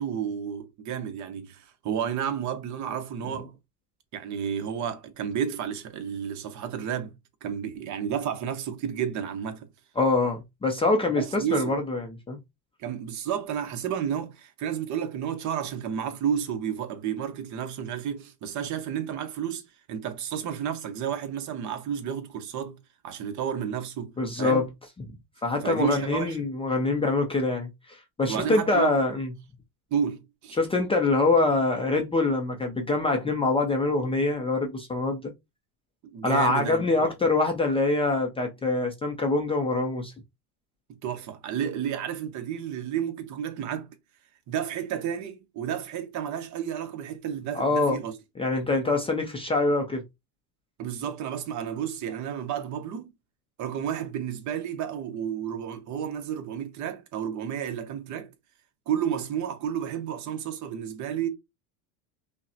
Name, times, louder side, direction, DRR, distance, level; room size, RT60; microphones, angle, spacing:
voice 1, 0.0-3.5 4.1-7.1 7.4-9.7 11.2-11.8 12.8-19.6 19.9-22.8 23.0-24.7 25.6-26.4 28.3-29.0 29.9-30.6 36.0-37.1 40.9-43.9 44.5-48.2 50.8-53.1 53.6-58.3 58.9-61.3, right 8 dB, 40° right, 0.9 m, -31 dB
voice 2, 10.0-12.4 24.2-24.7 25.4-29.3 30.6-35.3 36.2-40.1 47.5-48.0 48.4-50.0, left 3 dB, 15° left, 0.5 m, -25 dB
5.3 x 2.2 x 2.8 m
supercardioid pair, 130°, 45 cm